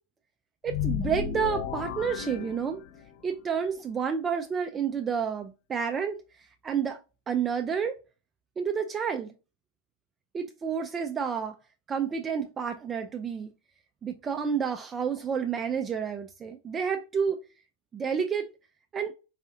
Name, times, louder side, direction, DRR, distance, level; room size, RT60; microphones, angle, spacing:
voice 1, 0.6-2.8 3.2-6.2 6.6-7.0 7.3-7.9 8.6-9.3 10.3-11.5 11.9-13.5 14.0-17.4 17.9-18.5 18.9-19.1, right 7 dB, 20° right, 0.4 m, -30 dB
sound 1, 0.7-3.2, left 8 dB, 45° left, 0.5 m, -33 dB
4.8 x 2.4 x 2.6 m
figure-of-eight pair, 90°, 0 cm